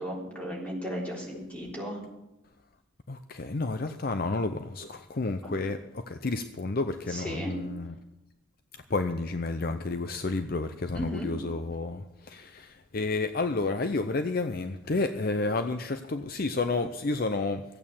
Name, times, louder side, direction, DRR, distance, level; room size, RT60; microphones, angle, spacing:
voice 1, 0.0-2.0 5.4-5.5 7.1-7.5 10.9-11.3, equal, 5° left, -3 dB, 3.7 m, -35 dB
voice 2, 3.1-7.9 8.7-17.6, left 3 dB, 45° left, 9 dB, 0.6 m, -31 dB
15.0 x 8.7 x 7.2 m, 0.93 s
head